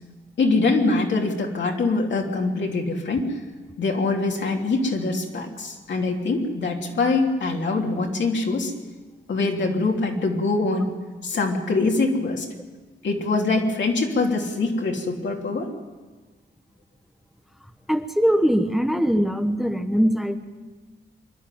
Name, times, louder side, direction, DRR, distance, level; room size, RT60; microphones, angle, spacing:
voice 1, 0.4-3.4 3.8-8.7 9.3-10.9 11.2-12.5 13.0-15.7, left 3 dB, 70° left, 1 dB, 3.2 m, -23 dB
voice 2, 17.9-20.4, equal, ahead, 7 dB, 1.1 m, -21 dB
25.0 x 11.5 x 9.2 m, 1.3 s
cardioid pair, 95°, 20 cm